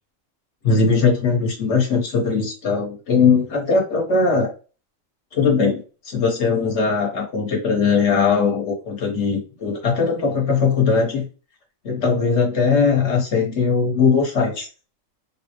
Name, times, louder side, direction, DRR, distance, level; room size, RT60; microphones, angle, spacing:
voice 1, 0.6-4.5 5.3-11.3 11.8-14.7, left 5 dB, 55° left, -1 dB, 1.2 m, -20 dB
3.7 x 2.0 x 2.9 m, 0.35 s
omnidirectional pair, 1.4 m